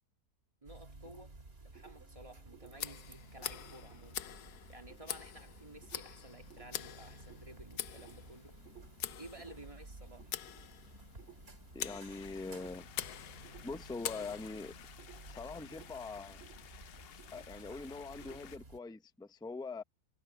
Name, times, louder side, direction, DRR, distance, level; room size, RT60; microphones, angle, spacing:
voice 1, 0.6-1.4 1.6-4.2 4.7-8.6 9.2-10.4, right 1 dB, 20° right, 2.0 m, -54 dB
sound 1, 0.6-18.8, right 3 dB, 40° right, 2.6 m, -54 dB
Tick, 2.7-14.8, left 11 dB, 85° left, 1.4 m, -45 dB
voice 2, 11.7-12.9 13.6-14.7 15.3-16.4 17.3-19.8, left 3 dB, 5° left, 0.3 m, -43 dB
sound 2, 12.1-18.6, left 10 dB, 65° left, 0.6 m, -55 dB
omnidirectional pair, 1.6 m